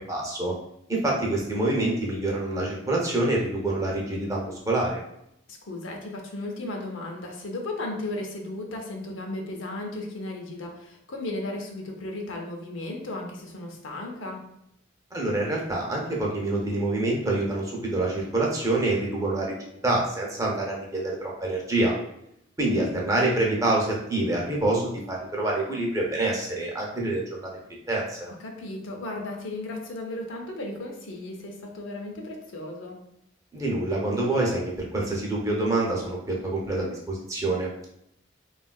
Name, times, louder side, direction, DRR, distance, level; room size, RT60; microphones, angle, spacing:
voice 1, 0.1-0.5 0.9-5.0 15.1-21.9 22.6-27.5 27.9-28.3 33.5-37.9, right 2 dB, 15° right, -2 dB, 0.5 m, -26 dB
voice 2, 5.5-14.4 28.4-33.0, left 2 dB, 85° left, 1 dB, 0.6 m, -35 dB
3.5 x 2.3 x 2.2 m, 0.77 s
head